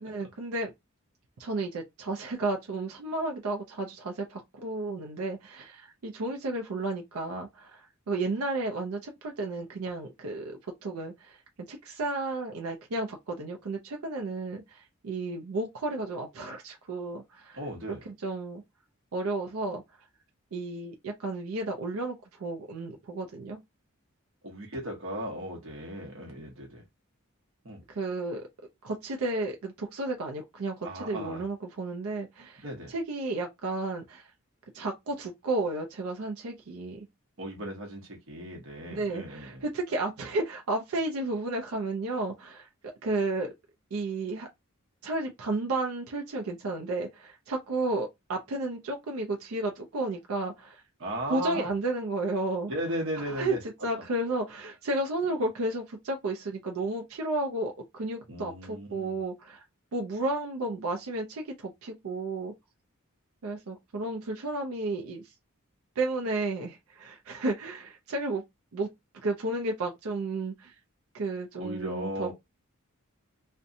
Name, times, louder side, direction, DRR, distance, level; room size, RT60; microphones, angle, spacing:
voice 1, 0.0-0.7 1.4-11.4 11.7-17.6 18.2-18.6 19.1-19.8 20.5-23.6 27.9-28.5 28.8-34.3 34.7-37.1 38.9-42.7 43.0-43.5 43.9-44.5 45.0-50.8 51.3-52.7 53.3-53.6 53.8-59.6 59.9-62.5 63.4-65.2 66.0-68.4 68.7-68.9 69.2-70.7 71.1-72.3, right 2 dB, 85° right, 0.5 m, -32 dB
voice 2, 17.5-18.1 24.4-26.8 27.6-27.8 30.8-31.4 32.6-32.9 37.4-39.6 51.0-51.7 52.7-53.6 58.3-59.2 71.6-72.3, equal, 65° right, 0.8 m, -36 dB
2.6 x 2.1 x 2.5 m
head